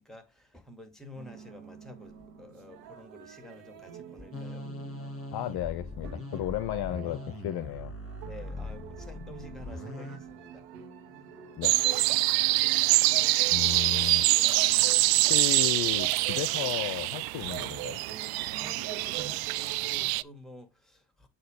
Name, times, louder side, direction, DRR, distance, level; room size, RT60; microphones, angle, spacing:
voice 1, 0.0-4.7 8.2-10.7 18.5-21.3, left 1 dB, ahead, 2.3 m, -49 dB
sound 1, 1.2-20.0, right 8 dB, 80° right, 1.3 m, -48 dB
sound 2, 4.3-10.2, left 2 dB, 30° left, 2.3 m, -40 dB
voice 2, 5.3-7.9 11.6-11.8 13.0-13.2 13.5-14.3 15.2-18.0, left 13 dB, 55° left, 0.7 m, -34 dB
sound 3, 11.6-20.2, right 19 dB, 55° right, 0.5 m, -25 dB
7.8 x 2.9 x 5.1 m
hypercardioid pair, 50°, 48 cm